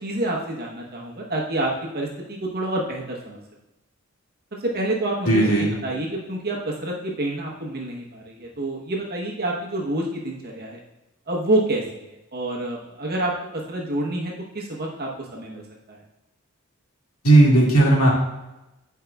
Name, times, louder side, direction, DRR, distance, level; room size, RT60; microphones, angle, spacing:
voice 1, 0.0-3.4 4.6-10.8 11.3-15.6 15.9-16.0, right 1 dB, 45° right, -1 dB, 1.0 m, -28 dB
voice 2, 5.3-5.7 17.2-18.1, right 2 dB, 80° left, -3 dB, 2.1 m, -15 dB
11.5 x 4.7 x 2.3 m, 0.98 s
head